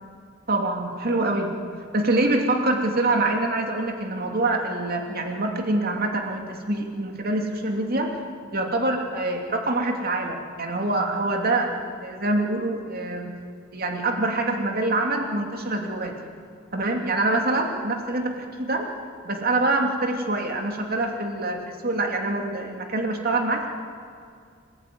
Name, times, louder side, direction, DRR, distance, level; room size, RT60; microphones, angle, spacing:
voice 1, 0.5-1.5 1.9-8.1 8.5-13.3 13.7-16.3 16.7-18.9 19.2-23.7, right 2 dB, 50° right, 2 dB, 2.9 m, -25 dB
27.0 x 18.0 x 9.5 m, 2.2 s
head